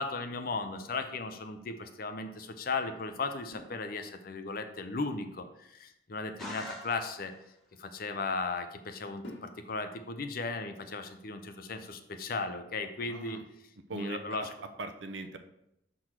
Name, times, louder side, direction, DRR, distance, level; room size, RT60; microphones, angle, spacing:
voice 1, 0.0-7.3 7.8-13.4 13.9-14.5, left 3 dB, 55° left, 8 dB, 0.6 m, -36 dB
sound 1, 3.5-4.4 6.4-8.4 9.2-10.0, left 1 dB, 75° left, 1.7 m, -52 dB
sound 2, 6.4-7.5, left 1 dB, ahead, 1.1 m, -44 dB
voice 2, 13.0-13.4 13.9-14.5 14.8-15.4, right 2 dB, 90° right, 7 dB, 0.7 m, -40 dB
6.4 x 3.9 x 4.5 m, 0.80 s
head